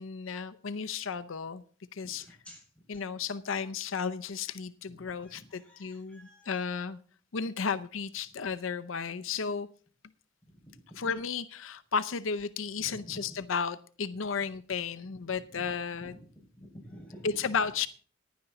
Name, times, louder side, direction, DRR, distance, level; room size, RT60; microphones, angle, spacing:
voice 1, 0.0-1.6 1.9-2.3 2.9-7.0 7.3-9.7 10.9-16.2 17.2-17.9, left 5 dB, 80° left, 11 dB, 0.7 m, -33 dB
voice 2, 2.2-2.6 5.2-6.5 13.0-13.1 15.5-15.7 16.1-16.2 16.6-17.3, equal, 5° left, 0 dB, 5.9 m, -50 dB
15.5 x 10.5 x 4.0 m, 0.43 s
head